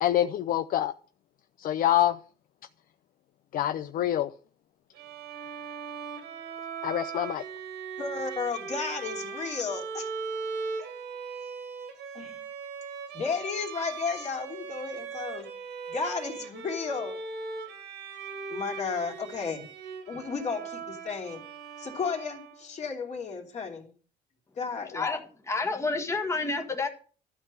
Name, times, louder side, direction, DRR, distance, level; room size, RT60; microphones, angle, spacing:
voice 1, 0.0-0.9 1.6-2.2 3.5-4.3 6.8-7.4, left 12 dB, 55° left, 0.6 m, -26 dB
Bowed string instrument, 4.9-22.8, right 5 dB, 85° right, 2.6 m, -39 dB
voice 2, 8.0-10.1 10.8-10.9 12.1-12.4 13.1-15.5 15.9-17.2 18.5-19.7 20.1-21.4 21.8-23.9 24.5-25.0, left 5 dB, 40° left, 2.9 m, -33 dB
voice 3, 24.9-26.9, left 3 dB, 15° left, 1.6 m, -29 dB
12.5 x 5.9 x 7.7 m
cardioid pair, 110°, 17 cm